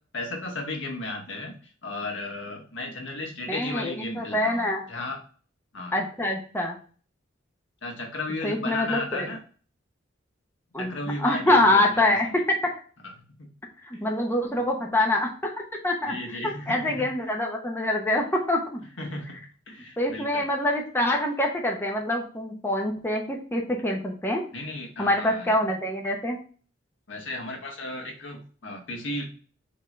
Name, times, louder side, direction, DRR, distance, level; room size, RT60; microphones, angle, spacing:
voice 1, 0.1-5.2 5.7-6.0 7.8-9.4 10.8-12.4 13.0-13.1 13.4-13.5 13.9-14.1 16.0-17.1 19.0-20.5 24.5-25.5 27.1-29.2, left 2 dB, 75° left, 2 dB, 1.5 m, -35 dB
voice 2, 3.5-4.8 5.9-6.8 8.4-9.3 10.7-12.7 13.8-15.5 15.8-16.2 16.4-18.8 20.0-24.4 25.0-26.4, left 1 dB, 10° left, 0 dB, 0.8 m, -25 dB
4.4 x 3.9 x 3.0 m, 0.40 s
head